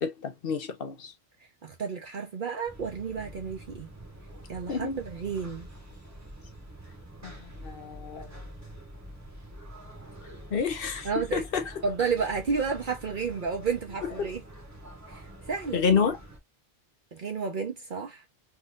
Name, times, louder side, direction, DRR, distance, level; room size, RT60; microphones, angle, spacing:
voice 1, 0.0-1.1 4.7-5.0 7.2-8.3 10.5-11.6 14.2-14.3 15.7-16.2, left 6 dB, 60° left, 0.9 m, -29 dB
voice 2, 1.6-3.9 4.5-5.7 11.0-11.4 11.8-14.4 15.1-15.2 15.5-15.8 17.1-18.2, right 5 dB, 50° right, 0.8 m, -31 dB
sound 1, 2.7-16.4, right 1 dB, 15° right, 0.9 m, -46 dB
3.6 x 2.7 x 2.4 m
omnidirectional pair, 1.1 m